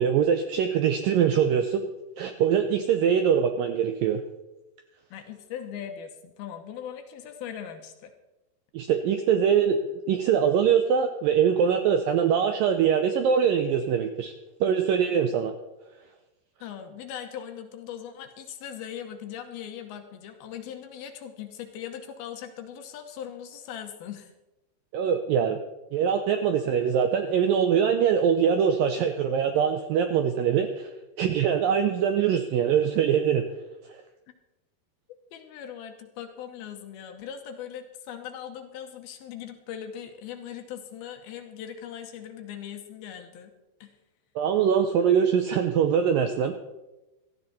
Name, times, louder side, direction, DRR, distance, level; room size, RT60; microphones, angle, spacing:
voice 1, 0.0-1.9 2.2-4.2 8.7-14.3 14.6-15.5 24.9-25.6 25.9-30.9 31.2-33.4 44.4-46.5, right 7 dB, 85° right, 7 dB, 2.0 m, -23 dB
voice 2, 5.1-8.1 16.6-24.3 34.3-34.4 35.3-43.5 43.8-43.9, left 9 dB, 70° left, 6 dB, 2.6 m, -40 dB
17.0 x 13.5 x 4.2 m, 0.99 s
omnidirectional pair, 5.0 m